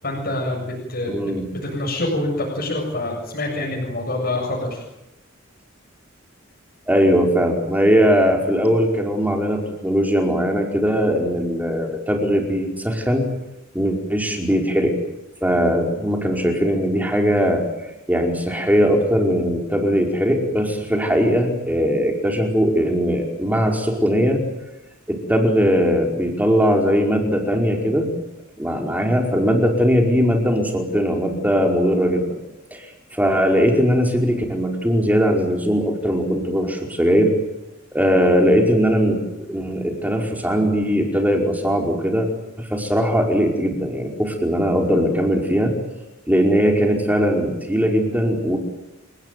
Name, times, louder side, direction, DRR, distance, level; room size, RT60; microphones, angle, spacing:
voice 1, 0.0-1.1 1.6-4.8, left 1 dB, 50° left, -2 dB, 8.0 m, -26 dB
voice 2, 1.1-1.5 6.9-13.3 13.7-14.9 15.4-17.6 18.1-24.4 25.1-28.1 28.6-32.4 32.7-32.8 33.1-37.3 37.9-42.3 42.6-45.7 46.3-48.6, equal, 10° right, 2 dB, 5.0 m, -19 dB
29.5 x 19.0 x 9.4 m, 0.91 s
head